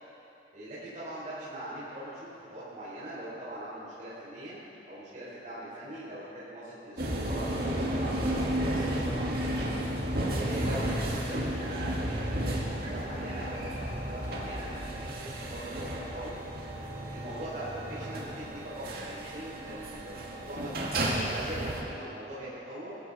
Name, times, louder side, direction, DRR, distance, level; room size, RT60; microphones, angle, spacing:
voice 1, 0.5-2.1 2.5-4.6 4.9-9.7 10.3-16.3 17.1-23.0, right 1 dB, 45° right, -11 dB, 4.7 m, -41 dB
sound 1, 7.0-21.8, right 1 dB, 60° right, 2.1 m, -33 dB
22.0 x 14.5 x 4.2 m, 2.9 s
head